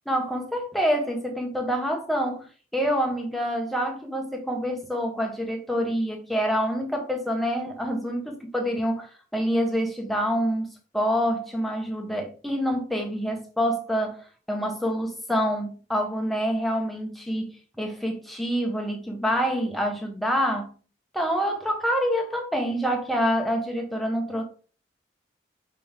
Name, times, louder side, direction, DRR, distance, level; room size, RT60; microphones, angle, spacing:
voice 1, 0.1-2.5 2.7-10.7 10.9-20.7 21.1-24.4, equal, ahead, 1.3 m, -27 dB
5.9 x 5.4 x 3.8 m
head